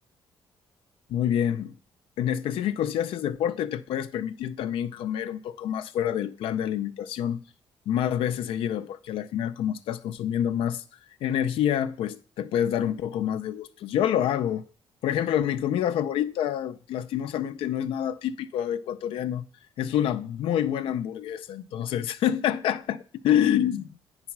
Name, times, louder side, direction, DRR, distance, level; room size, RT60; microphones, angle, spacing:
voice 1, 1.1-1.8 2.2-7.4 7.9-10.8 11.2-14.6 15.0-19.5 19.8-24.0, left 10 dB, 90° left, 0.5 m, -27 dB
8.6 x 4.0 x 5.9 m
cardioid pair, 130°, 9 cm